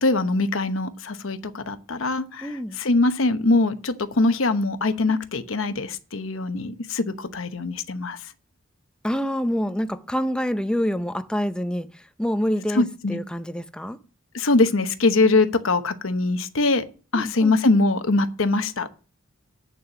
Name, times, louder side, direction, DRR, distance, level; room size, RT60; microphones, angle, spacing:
voice 1, 0.0-8.2 12.7-13.2 14.3-16.8 17.1-19.0, left 2 dB, 70° left, 1.0 m, -22 dB
voice 2, 2.4-2.8 9.0-11.9 12.2-14.0 17.1-17.6, equal, 5° left, 0.6 m, -26 dB
8.6 x 6.8 x 5.9 m
head